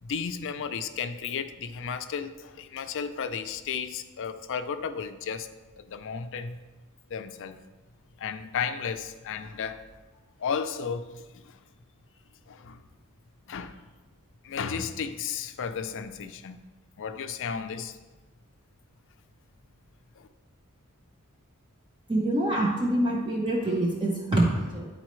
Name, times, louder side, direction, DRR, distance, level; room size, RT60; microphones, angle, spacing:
voice 1, 0.0-5.5 5.8-6.6 7.1-7.6 8.2-9.8 10.4-11.2 12.5-12.8 13.5-13.8 14.4-16.6 17.0-18.0 20.2-20.3, left 6 dB, 60° left, 0.5 m, -33 dB
voice 2, 22.1-24.9, right 1 dB, 20° right, 0.7 m, -25 dB
10.5 x 4.1 x 3.1 m
head